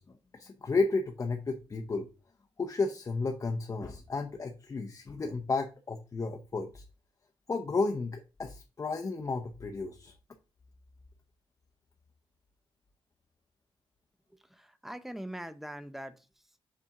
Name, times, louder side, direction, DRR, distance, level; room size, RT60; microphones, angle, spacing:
voice 1, 0.0-2.1 2.6-6.8 7.5-10.1, left 3 dB, 30° left, 0.8 m, -33 dB
voice 2, 14.3-16.6, right 1 dB, 5° right, 0.5 m, -43 dB
7.1 x 4.2 x 3.7 m
wide cardioid pair, 160°, 10 cm